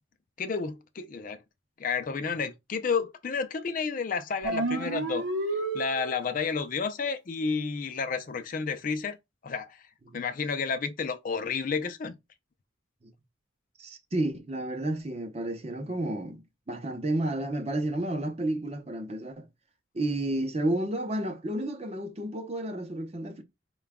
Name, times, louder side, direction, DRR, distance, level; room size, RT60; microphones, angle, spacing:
voice 1, 0.4-1.4 1.8-5.2 5.7-9.2 9.4-9.8 10.1-12.2, left 5 dB, 45° left, 0.4 m, -31 dB
sound 1, 4.4-6.4, right 2 dB, 70° right, 0.7 m, -31 dB
voice 2, 13.8-19.5 19.9-23.4, right 1 dB, 30° right, 0.6 m, -31 dB
4.8 x 2.3 x 3.5 m
head